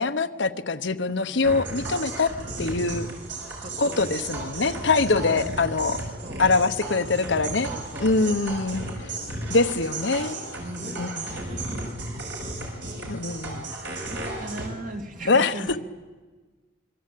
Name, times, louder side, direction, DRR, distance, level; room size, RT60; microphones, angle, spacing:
voice 1, 0.0-2.3 2.6-3.1 3.8-6.0 6.4-7.7 8.0-8.9 9.5-10.4 11.0-11.4 13.1-13.7 15.3-15.8, left 3 dB, 65° left, 9 dB, 1.0 m, -24 dB
sound 1, 1.4-14.7, right 2 dB, 65° right, 6.0 m, -34 dB
voice 2, 1.8-2.1 2.4-2.8 3.1-3.3 3.6-4.8 5.3-5.7 6.2-7.0 7.6-9.5 10.1-10.3 10.6-13.0 13.5-15.8, right 1 dB, 45° right, 3 dB, 2.5 m, -41 dB
26.0 x 23.5 x 8.5 m, 1.4 s
head